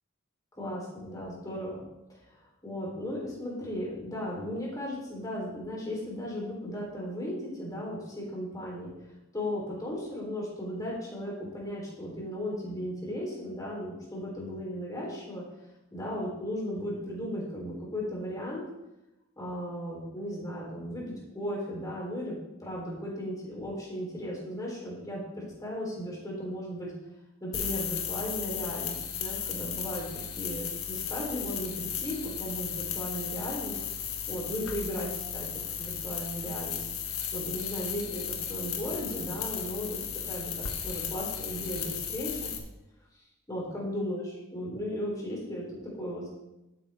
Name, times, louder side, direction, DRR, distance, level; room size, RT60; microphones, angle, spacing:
voice 1, 0.5-1.8 2.1-8.9 9.3-15.4 15.9-18.6 19.4-26.9 27.4-30.1 30.4-33.8 34.3-40.0 40.3-42.5 43.5-46.3, equal, 15° left, -4 dB, 3.3 m, -36 dB
sound 1, 27.5-42.6, left 8 dB, 85° left, 1.4 m, -35 dB
12.0 x 9.0 x 3.4 m, 0.96 s
head